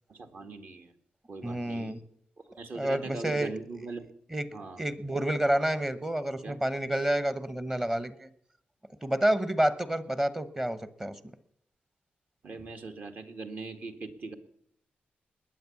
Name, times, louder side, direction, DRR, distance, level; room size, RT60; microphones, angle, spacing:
voice 1, 0.1-0.9 1.3-1.9 2.6-4.1 4.5-4.8 6.4-6.6 12.4-14.3, right 3 dB, 50° right, 6 dB, 1.8 m, -41 dB
voice 2, 1.4-2.0 2.7-3.5 4.3-8.3 9.0-11.2, right 1 dB, 15° right, 15 dB, 1.0 m, -29 dB
20.5 x 9.0 x 7.1 m, 0.69 s
wide cardioid pair, 140°, 4 cm